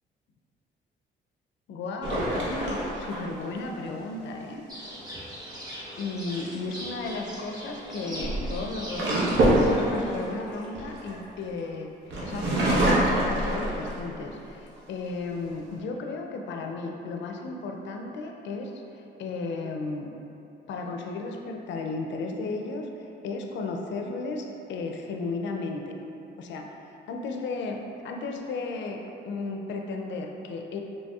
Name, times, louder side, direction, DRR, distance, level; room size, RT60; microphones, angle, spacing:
voice 1, 1.7-4.6 6.0-11.9 12.2-20.1 20.7-25.9 26.4-26.7 27.1-30.8, left 3 dB, 65° left, 2 dB, 0.4 m, -34 dB
sound 1, 2.0-3.6 6.6-6.9 7.8-11.6 12.1-14.2 14.8-14.9 15.2-15.8, right 1 dB, 75° right, 0.8 m, -26 dB
sound 2, 4.7-10.4, equal, 20° right, 1.0 m, -41 dB
4.1 x 3.0 x 2.3 m, 2.8 s
cardioid pair, 90°, 20 cm